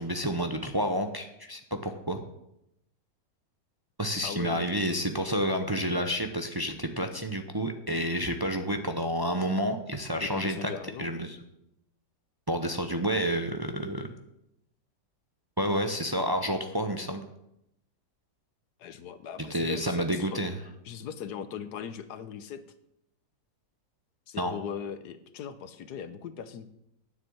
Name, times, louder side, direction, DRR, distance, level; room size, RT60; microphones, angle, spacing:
voice 1, 0.0-2.2 4.0-10.7 11.0-11.4 12.5-14.1 15.6-17.2 19.5-20.5 24.4-24.5, equal, 30° right, 6 dB, 0.4 m, -29 dB
voice 2, 4.2-4.8 10.2-11.1 18.8-20.4 20.8-22.6 24.3-26.7, left 8 dB, 70° left, 12 dB, 1.4 m, -39 dB
9.5 x 7.5 x 8.8 m, 0.81 s
omnidirectional pair, 1.9 m